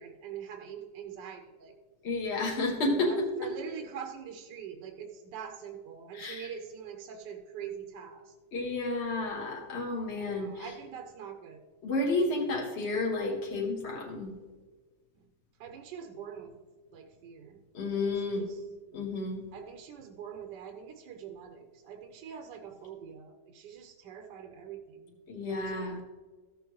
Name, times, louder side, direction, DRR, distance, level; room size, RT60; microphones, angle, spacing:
voice 1, 0.0-1.7 2.8-8.3 10.1-11.6 15.6-16.5 16.9-17.6 17.9-18.6 19.5-25.1 25.4-26.0, right 8 dB, 75° right, 5 dB, 1.3 m, -44 dB
voice 2, 2.0-3.5 6.1-6.5 8.5-10.7 11.8-14.3 17.7-18.4 18.9-19.4 25.3-26.0, left 2 dB, 40° left, -1 dB, 1.2 m, -31 dB
14.0 x 7.1 x 3.0 m, 1.4 s
omnidirectional pair, 2.0 m